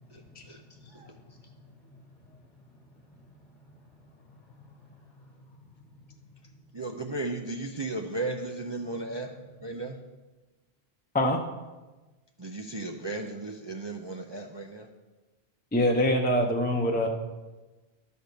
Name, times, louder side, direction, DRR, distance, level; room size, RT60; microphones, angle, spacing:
voice 1, 0.1-2.0 2.7-2.8 3.1-3.2 3.7-3.8 4.6-5.1 8.8-9.0 17.0-17.1, left 3 dB, 50° left, 2 dB, 1.6 m, -53 dB
voice 2, 6.7-9.3 9.6-10.0 12.4-14.9, right 2 dB, 30° right, 1 dB, 0.5 m, -35 dB
voice 3, 15.7-17.1, left 1 dB, 10° left, 1 dB, 0.7 m, -24 dB
11.5 x 4.4 x 6.7 m, 1.2 s
omnidirectional pair, 1.0 m